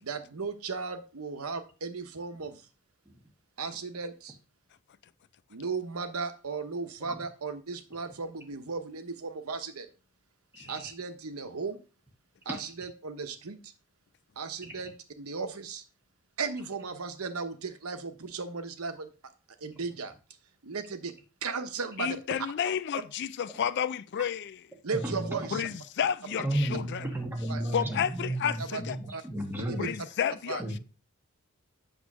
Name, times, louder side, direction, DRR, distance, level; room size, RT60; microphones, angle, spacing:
voice 1, 0.0-2.6 3.6-4.4 5.5-9.9 10.7-11.8 12.4-13.6 14.4-15.8 16.4-19.1 19.6-20.1 20.6-21.1 21.4-22.2 24.8-25.6 27.5-27.7 28.6-28.8 29.1-29.2 29.6-29.8 30.5-30.6, right 4 dB, 90° right, 1.0 m, -36 dB
voice 2, 10.5-10.9 12.5-12.6 14.6-14.7 23.5-23.6 24.9-25.6 26.4-30.0 30.6-30.8, right 1 dB, 10° right, 1.4 m, -33 dB
voice 3, 22.0-24.6 25.5-27.0 27.7-29.0 29.8-30.8, left 8 dB, 55° left, 0.4 m, -31 dB
8.2 x 3.1 x 6.1 m
head